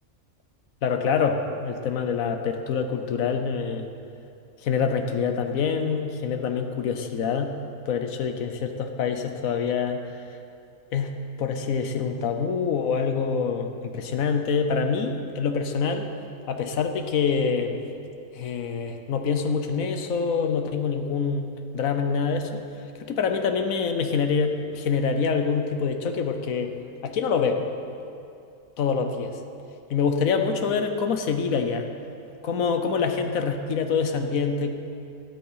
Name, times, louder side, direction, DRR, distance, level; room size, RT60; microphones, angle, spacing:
voice 1, 0.8-3.9 4.6-7.5 7.9-10.0 10.9-11.1 11.4-16.1 16.5-17.8 18.3-21.5 21.7-22.6 23.0-26.7 27.0-27.7 28.8-29.4 29.9-31.9 32.4-34.7, left 5 dB, 85° left, 6 dB, 1.3 m, -25 dB
13.5 x 12.0 x 5.7 m, 2.5 s
omnidirectional pair, 1.4 m